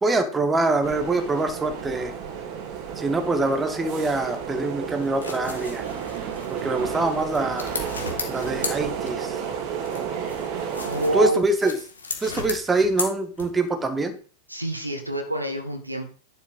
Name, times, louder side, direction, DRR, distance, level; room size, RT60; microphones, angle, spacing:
voice 1, 0.0-2.1 3.0-5.9 6.5-7.7 8.3-9.4 11.1-11.7 12.2-14.2, right 2 dB, 15° right, 7 dB, 1.5 m, -24 dB
sound 1, 0.8-11.3, right 7 dB, 40° right, 2.3 m, -32 dB
sound 2, 4.9-9.5 9.8-13.8, left 4 dB, 70° left, 2.4 m, -36 dB
voice 2, 10.8-11.4 14.5-16.1, right 1 dB, 85° right, 5 dB, 1.9 m, -27 dB
11.0 x 5.4 x 5.3 m, 0.40 s
figure-of-eight pair, 90°, 0 cm